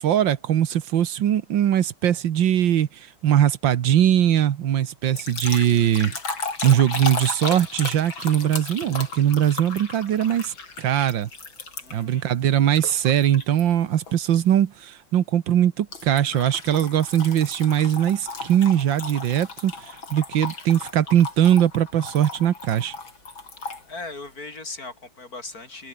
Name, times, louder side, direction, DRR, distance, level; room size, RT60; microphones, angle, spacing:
voice 1, 0.0-6.2 6.6-11.3 11.9-22.9, right 10 dB, 70° right, 1.8 m, -21 dB
sound 1, 5.2-12.1 12.8-13.6 14.1-14.4 15.9-23.8, left 4 dB, 85° left, 4.9 m, -35 dB
voice 2, 11.8-12.3 23.6-25.9, left 3 dB, 45° left, 5.4 m, -38 dB
omnidirectional pair, 2.1 m